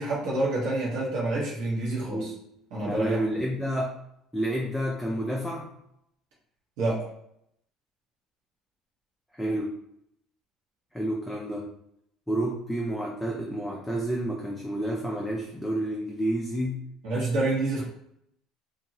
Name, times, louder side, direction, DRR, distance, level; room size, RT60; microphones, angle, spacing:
voice 1, 0.0-2.3 2.7-3.4 6.8-7.0 17.0-17.8, right 2 dB, 70° right, -6 dB, 1.0 m, -28 dB
voice 2, 2.9-3.9 4.3-5.7 9.3-9.7 10.9-11.7 12.3-16.8, right 1 dB, ahead, -2 dB, 0.3 m, -29 dB
2.9 x 2.6 x 2.7 m, 0.76 s
cardioid pair, 175°, 0 cm